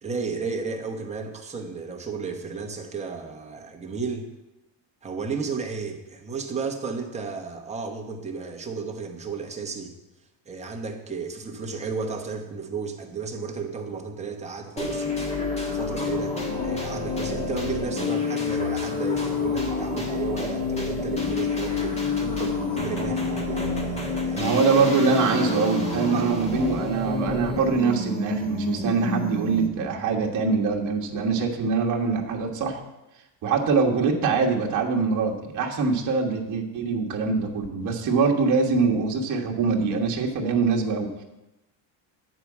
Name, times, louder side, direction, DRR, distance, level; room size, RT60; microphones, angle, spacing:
voice 1, 0.0-4.3 5.0-9.9 10.5-15.1 15.7-16.4 16.6-23.8 24.2-24.5 26.1-26.3, right 5 dB, 15° right, 2 dB, 1.1 m, -33 dB
sound 1, 14.8-29.9, left 3 dB, 15° left, 1.5 m, -28 dB
voice 2, 24.3-32.8 33.4-41.2, right 4 dB, 45° right, 0 dB, 1.4 m, -23 dB
9.8 x 4.7 x 7.3 m, 0.98 s
cardioid pair, 145°, 41 cm